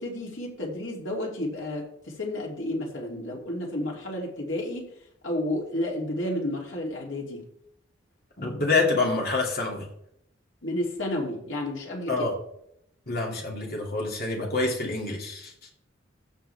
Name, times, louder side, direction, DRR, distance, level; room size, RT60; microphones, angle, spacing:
voice 1, 0.0-4.9 5.2-7.5 10.6-12.3, left 1 dB, 80° left, -1 dB, 2.9 m, -31 dB
voice 2, 8.4-9.9 12.1-12.3 13.1-15.5, left 3 dB, 50° left, 0 dB, 2.4 m, -27 dB
15.0 x 6.6 x 3.4 m, 0.73 s
head